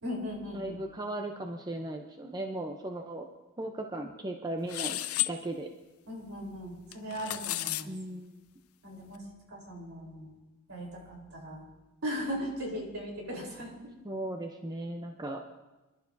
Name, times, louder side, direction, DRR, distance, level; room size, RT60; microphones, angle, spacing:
voice 1, 0.0-0.8 6.1-7.9 8.8-10.3 10.7-11.6 12.0-13.7, equal, 70° right, -2 dB, 3.9 m, -38 dB
voice 2, 0.5-3.2 3.6-5.0 5.3-5.7 7.9-8.4 14.0-15.4, right 1 dB, 20° right, 3 dB, 0.7 m, -37 dB
sound 1, 4.7-5.3 6.9-7.8, left 16 dB, 80° left, 0.5 m, -32 dB
26.5 x 12.0 x 2.7 m, 1.1 s
head